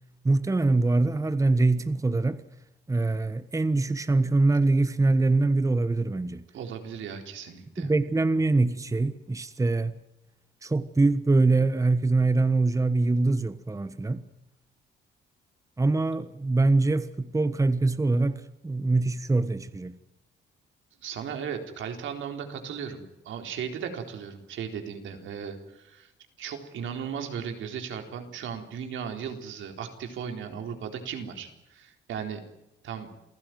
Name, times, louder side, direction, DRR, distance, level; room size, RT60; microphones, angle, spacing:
voice 1, 0.2-2.4 2.9-6.4 7.8-9.9 10.6-14.2 15.8-20.0, right 3 dB, 15° right, 1.3 m, -24 dB
voice 2, 6.5-7.9 21.0-26.1 26.4-32.4 32.8-33.1, right 7 dB, 75° right, 4.0 m, -36 dB
28.0 x 15.5 x 9.4 m
cardioid pair, 90°, 20 cm